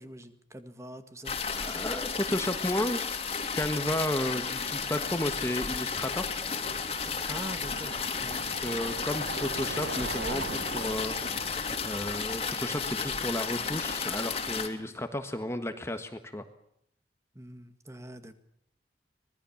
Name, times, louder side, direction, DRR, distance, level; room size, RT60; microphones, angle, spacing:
voice 1, 0.0-1.4 7.3-8.7 14.8-15.0 17.4-18.4, right 1 dB, 15° right, 9 dB, 2.0 m, -44 dB
sound 1, 1.2-14.7, left 5 dB, 35° left, 2.7 m, -33 dB
voice 2, 1.6-3.0 3.5-6.4 8.4-11.4 11.8-16.4, left 1 dB, 15° left, 8 dB, 1.5 m, -33 dB
Bicycle, 3.5-14.4, right 3 dB, 70° right, 1.3 m, -43 dB
25.5 x 20.5 x 7.2 m, 0.69 s
head